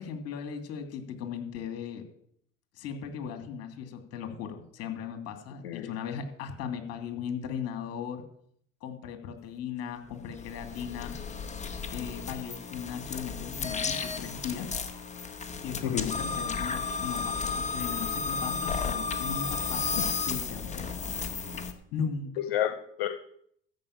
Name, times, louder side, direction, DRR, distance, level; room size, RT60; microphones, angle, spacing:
voice 1, 0.0-2.1 2.7-8.2 8.8-11.1 11.9-14.7 15.6-21.2 21.9-22.3, left 7 dB, 55° left, 7 dB, 2.5 m, -37 dB
sound 1, 10.1-21.7, left 5 dB, 25° left, 1.6 m, -33 dB
voice 2, 15.8-16.1 20.0-20.1 22.4-23.1, left 11 dB, 85° left, 7 dB, 0.9 m, -30 dB
13.5 x 5.2 x 8.7 m, 0.67 s
hypercardioid pair, 85°, 29 cm